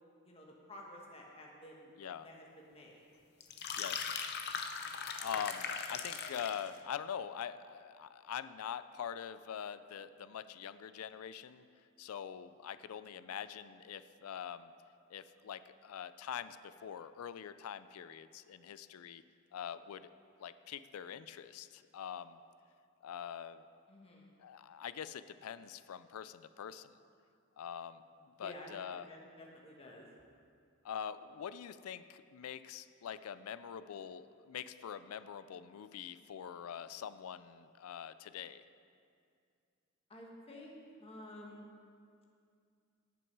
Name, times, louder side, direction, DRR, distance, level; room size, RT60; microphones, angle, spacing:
voice 1, 0.2-1.9 2.2-3.1 23.9-24.3 28.3-30.1 40.1-41.6, left 1 dB, 25° left, -2 dB, 1.4 m, -52 dB
sound 1, 3.4-6.7, left 6 dB, 50° left, 0.7 m, -39 dB
voice 2, 3.8-4.2 5.2-11.7 12.0-14.7 15.1-19.2 19.5-20.1 20.4-22.4 23.0-23.6 24.4-26.9 27.6-28.0 28.4-29.1 30.8-38.6, left 8 dB, 85° left, 14 dB, 0.4 m, -44 dB
17.5 x 6.1 x 4.6 m, 2.3 s
head